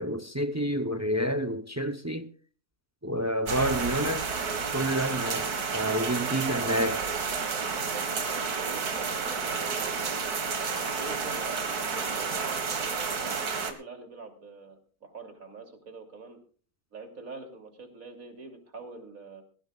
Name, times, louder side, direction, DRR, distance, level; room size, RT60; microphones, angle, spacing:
voice 1, 0.0-2.3 3.0-4.3 4.7-7.0, equal, 15° right, 0.5 m, -29 dB
sound 1, 3.5-13.7, right 5 dB, 75° right, 2.2 m, -31 dB
voice 2, 6.5-10.2 11.0-16.4 16.9-19.4, right 4 dB, 60° right, 3.4 m, -45 dB
18.5 x 16.0 x 2.4 m
omnidirectional pair, 1.6 m